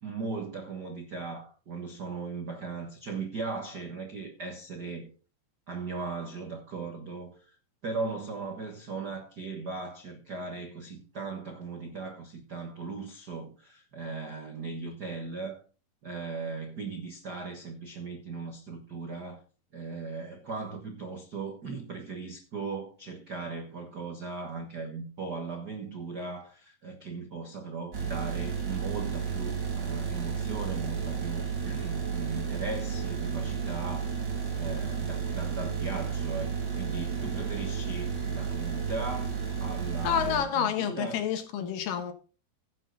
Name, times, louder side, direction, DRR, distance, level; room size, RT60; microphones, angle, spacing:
voice 1, 0.0-5.1 5.7-7.5 7.8-15.6 16.0-19.4 19.7-34.3 34.6-41.2, right 4 dB, 70° right, 0.9 m, -38 dB
sound 1, 27.9-40.4, right 6 dB, 30° right, 3.0 m, -32 dB
voice 2, 40.0-42.1, left 9 dB, 70° left, 2.8 m, -29 dB
15.5 x 7.4 x 4.0 m
omnidirectional pair, 4.2 m